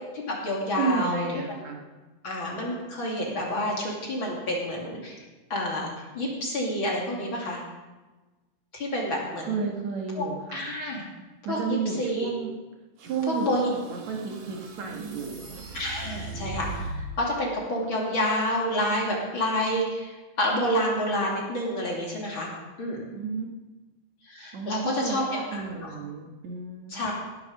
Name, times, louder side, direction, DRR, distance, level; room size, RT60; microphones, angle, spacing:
voice 1, 0.1-1.2 1.6-1.7 2.2-5.2 5.5-5.9 6.1-7.6 8.7-9.7 10.1-10.2 10.5-11.1 11.5-12.3 13.3-13.7 15.7-22.5 22.8-23.0 24.2-25.9 26.9-27.1, left 1 dB, 40° left, -2 dB, 3.2 m, -29 dB
voice 2, 0.8-1.8 9.4-10.6 11.4-12.6 13.0-15.5 23.1-23.5 24.5-27.1, right 5 dB, 60° right, 1 dB, 2.7 m, -32 dB
sound 1, 13.0-17.3, right 2 dB, 80° right, 3.7 m, -39 dB
18.0 x 8.4 x 6.6 m, 1.2 s
omnidirectional pair, 3.7 m